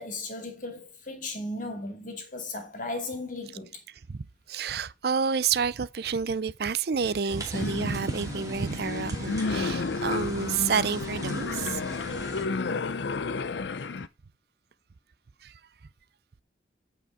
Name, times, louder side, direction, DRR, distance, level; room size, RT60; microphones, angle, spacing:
voice 1, 0.0-3.8, left 2 dB, 45° left, 2.2 m, -36 dB
voice 2, 4.1-11.8 15.4-15.5, right 6 dB, 60° right, 0.5 m, -29 dB
sound 1, 7.3-12.5, right 2 dB, 20° right, 2.1 m, -42 dB
sound 2, 7.5-14.1, left 4 dB, 75° left, 0.6 m, -31 dB
8.5 x 5.0 x 4.9 m
head